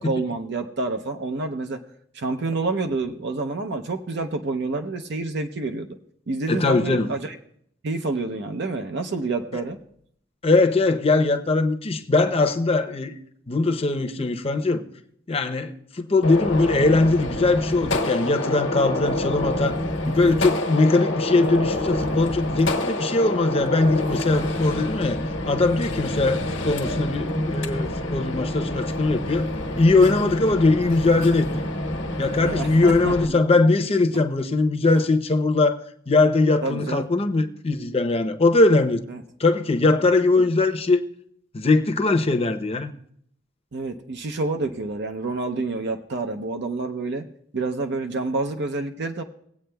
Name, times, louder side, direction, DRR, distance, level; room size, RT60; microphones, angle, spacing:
voice 1, 0.0-1.8 2.1-5.9 6.3-7.3 7.8-9.8 32.4-33.4 34.1-34.2 34.9-35.0 36.6-37.0 39.1-39.2 43.7-47.2 47.5-49.2, right 3 dB, 65° right, 0.6 m, -28 dB
voice 2, 6.5-7.1 10.4-13.2 13.5-14.8 15.3-19.8 20.0-29.5 29.8-31.5 32.2-39.0 39.4-41.0 41.5-42.9, left 3 dB, 30° left, 0.7 m, -21 dB
Gunshot gunfire, 16.2-33.2, left 1 dB, 85° left, 1.2 m, -27 dB
21.0 x 8.4 x 2.3 m
head